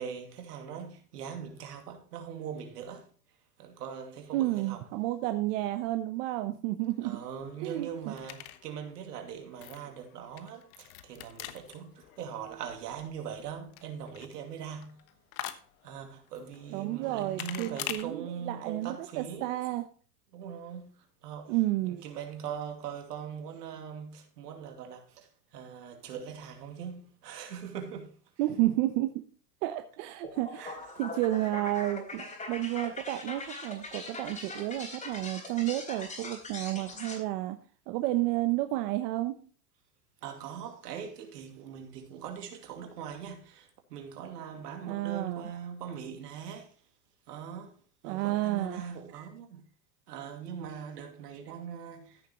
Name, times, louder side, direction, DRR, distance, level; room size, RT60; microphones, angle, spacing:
voice 1, 0.0-3.1 3.6-4.8 7.0-15.0 15.8-19.6 20.3-21.5 21.8-28.1 30.6-30.8 40.2-46.7 47.3-47.8 48.0-49.6 50.1-52.2, right 7 dB, 80° right, 2.5 m, -41 dB
voice 2, 4.3-7.2 7.6-8.2 16.7-19.9 21.5-22.1 28.4-29.1 29.6-30.6 31.0-37.6 37.9-39.4 44.8-45.5 48.0-48.8, right 16 dB, 55° right, 1.0 m, -31 dB
sound 1, 6.8-18.0, left 13 dB, 60° left, 1.2 m, -46 dB
sound 2, 30.2-37.2, left 2 dB, 15° left, 3.5 m, -42 dB
14.5 x 6.8 x 3.1 m
hypercardioid pair, 125°, 47 cm